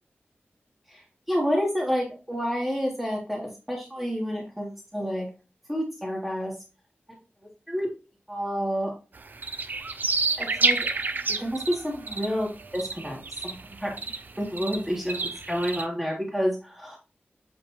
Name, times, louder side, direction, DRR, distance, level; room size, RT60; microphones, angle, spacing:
voice 1, 1.3-5.3 5.7-6.5 7.7-7.9 8.3-8.9 10.4-10.8 11.3-13.2 13.4-17.0, equal, 5° right, -2 dB, 1.0 m, -29 dB
sound 1, 9.2-15.9, right 3 dB, 50° right, 0.4 m, -29 dB
7.0 x 2.4 x 2.8 m, 0.34 s
wide cardioid pair, 80°, 4 cm